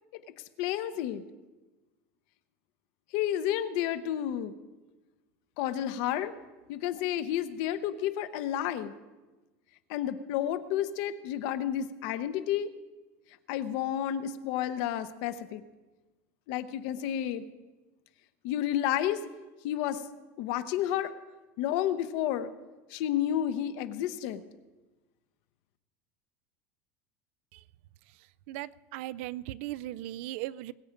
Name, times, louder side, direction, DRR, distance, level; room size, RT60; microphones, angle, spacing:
voice 1, 0.6-1.2 3.1-4.5 5.6-6.3 6.7-8.9 9.9-12.7 13.5-15.6 16.5-17.4 18.4-19.2 19.6-20.0 20.4-21.1 21.6-22.5 22.9-24.4, left 11 dB, 55° left, 12 dB, 0.8 m, -31 dB
voice 2, 28.5-30.7, right 15 dB, 60° right, 20 dB, 0.4 m, -38 dB
21.0 x 8.5 x 5.1 m, 1.2 s
cardioid pair, 170°, 8 cm